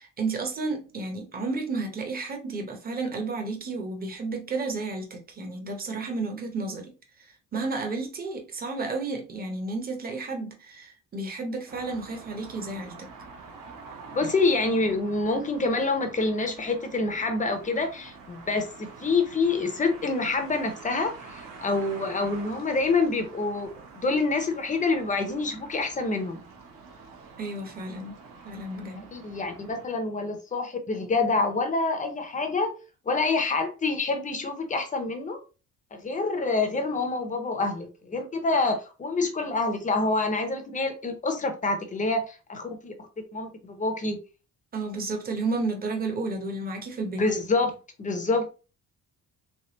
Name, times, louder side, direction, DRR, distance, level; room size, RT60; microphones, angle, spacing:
voice 1, 0.0-13.1 27.4-28.2 28.4-29.1 44.7-47.3, right 3 dB, 25° right, 0.7 m, -32 dB
sound 1, 11.7-29.9, right 4 dB, 70° right, 1.0 m, -46 dB
voice 2, 14.1-23.7 24.0-26.4 29.1-32.7 33.1-35.4 35.9-42.9 43.3-44.2 47.2-47.7 48.0-48.5, left 3 dB, 25° left, 0.6 m, -27 dB
3.4 x 3.3 x 2.8 m
cardioid pair, 180°, 34 cm